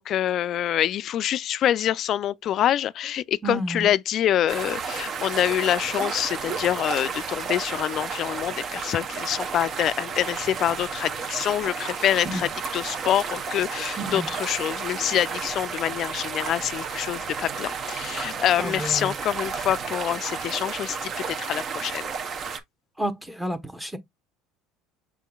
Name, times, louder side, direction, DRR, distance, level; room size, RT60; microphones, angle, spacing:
voice 1, 0.0-22.1, left 11 dB, 50° left, 0.3 m, -26 dB
voice 2, 3.4-3.9 12.2-12.4 14.1-14.3 18.6-19.1 23.0-24.0, right 1 dB, 5° right, 0.8 m, -30 dB
sound 1, 4.5-22.6, right 5 dB, 45° right, 0.8 m, -32 dB
5.9 x 3.7 x 2.2 m
supercardioid pair, 90°, 0 cm